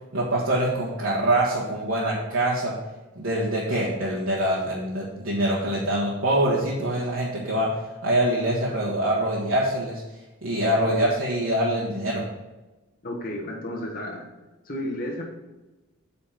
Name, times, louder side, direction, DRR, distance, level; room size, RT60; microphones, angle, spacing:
voice 1, 0.1-2.7 3.1-7.7 8.0-10.0 10.4-12.2, right 1 dB, 70° right, -6 dB, 1.5 m, -24 dB
voice 2, 13.0-14.3 14.7-15.2, left 1 dB, 40° left, -2 dB, 1.2 m, -32 dB
8.6 x 4.3 x 5.9 m, 1.1 s
head